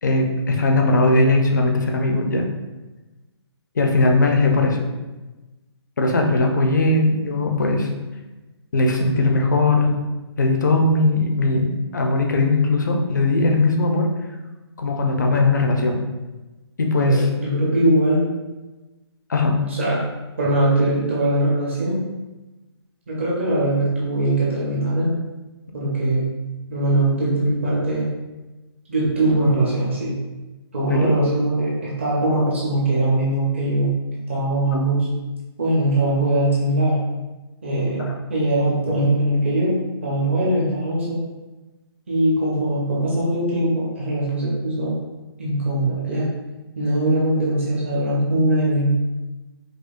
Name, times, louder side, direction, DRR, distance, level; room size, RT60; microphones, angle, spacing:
voice 1, 0.0-2.5 3.8-4.8 6.0-7.9 8.7-9.9 10.4-14.1 14.8-16.0 16.8-17.3 19.3-19.6 30.9-31.1 34.7-34.8 38.0-38.1, left 2 dB, 40° left, 2 dB, 0.5 m, -19 dB
voice 2, 16.9-18.3 19.7-20.0 20.4-22.0 23.1-25.1 25.7-26.3 26.7-28.1 28.9-30.1 30.7-34.0 34.3-35.1 35.6-37.0 37.6-39.7 40.0-41.2 42.1-45.0 45.4-46.3 46.8-49.0, right 1 dB, 25° right, -6 dB, 0.6 m, -21 dB
5.0 x 2.0 x 2.4 m, 1.1 s
hypercardioid pair, 175°, 14 cm